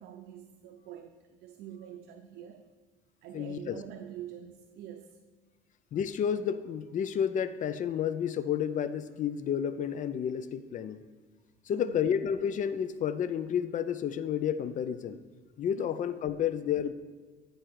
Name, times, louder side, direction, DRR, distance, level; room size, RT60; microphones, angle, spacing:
voice 1, 0.0-2.6 3.2-5.2 11.7-12.1 15.7-15.9, right 10 dB, 80° right, 5 dB, 0.6 m, -46 dB
voice 2, 3.3-3.8 5.9-11.0 11.7-15.2 15.6-16.9, left 8 dB, 50° left, 12 dB, 0.5 m, -31 dB
10.5 x 5.1 x 4.6 m, 1.4 s
cardioid pair, 110°, 17 cm